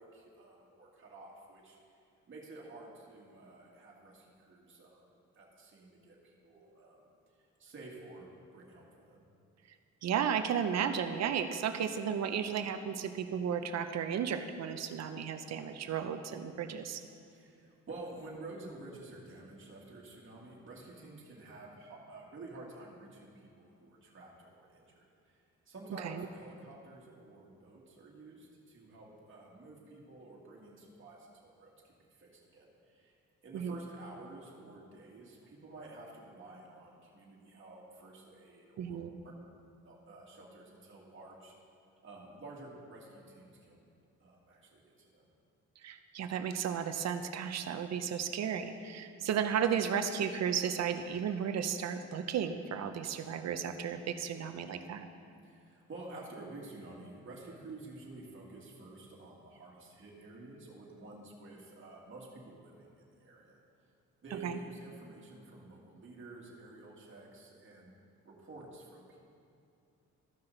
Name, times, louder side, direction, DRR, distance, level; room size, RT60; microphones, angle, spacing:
voice 1, 0.0-1.8 2.3-5.0 5.3-7.1 7.6-9.3 17.3-25.4 25.7-33.2 33.4-39.0 39.2-39.3 39.8-41.5 42.0-43.9 44.2-45.3 55.4-63.6 64.2-67.9 68.2-69.2, right 2 dB, 40° right, -4 dB, 2.1 m, -50 dB
voice 2, 10.0-17.0 26.0-26.3 33.5-33.8 38.8-39.1 45.8-55.1 64.4-64.6, right 8 dB, 60° right, 8 dB, 0.6 m, -34 dB
14.0 x 5.7 x 3.9 m, 2.5 s
cardioid pair, 90°, 30 cm